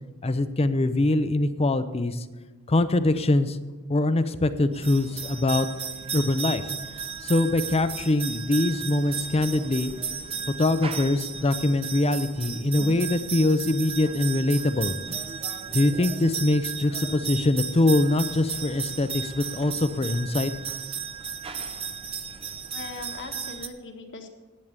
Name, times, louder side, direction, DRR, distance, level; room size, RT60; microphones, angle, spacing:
voice 1, 0.2-2.3 2.7-3.6 3.9-5.7 6.1-6.6 7.2-9.9 10.5-15.0 15.7-20.5, left 2 dB, 30° left, 12 dB, 0.6 m, -23 dB
sound 1, 4.7-23.7, right 6 dB, 25° right, 0.7 m, -34 dB
voice 2, 22.7-24.3, left 3 dB, 55° left, 5 dB, 1.6 m, -40 dB
10.5 x 8.4 x 8.1 m, 1.3 s
head